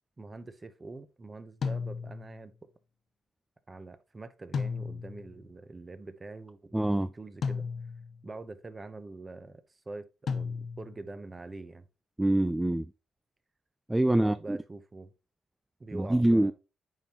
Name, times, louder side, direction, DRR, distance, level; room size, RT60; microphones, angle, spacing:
voice 1, 0.2-2.5 3.7-6.7 7.1-7.7 8.2-11.9 14.1-15.1 15.8-16.5, right 3 dB, 25° right, 0.9 m, -44 dB
sound 1, 1.6-2.4 4.5-5.3 7.4-8.2 10.3-11.0, left 5 dB, 55° left, 0.8 m, -34 dB
voice 2, 6.7-7.1 12.2-12.9 13.9-14.6 15.9-16.5, right 1 dB, 10° right, 0.3 m, -25 dB
9.0 x 4.3 x 3.0 m
cardioid pair, 90°, 0 cm